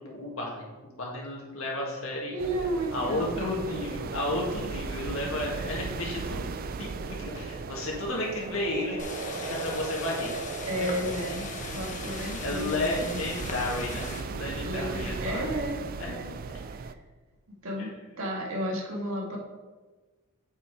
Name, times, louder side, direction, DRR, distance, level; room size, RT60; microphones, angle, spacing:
voice 1, 0.0-2.3 2.9-6.5 6.8-9.0 9.3-10.3 10.7-11.1 11.4-11.5 12.4-15.5 16.0-16.1, left 1 dB, 70° left, -3 dB, 1.9 m, -33 dB
voice 2, 2.3-3.7 10.7-11.4 11.7-13.2 14.6-16.3 16.6-17.0 17.6-19.4, equal, 80° right, -2 dB, 1.7 m, -33 dB
sound 1, 2.4-16.9, right 4 dB, 45° right, 0.3 m, -37 dB
sound 2, 9.0-14.2, left 3 dB, 35° left, 1.0 m, -39 dB
6.8 x 5.5 x 4.7 m, 1.3 s
head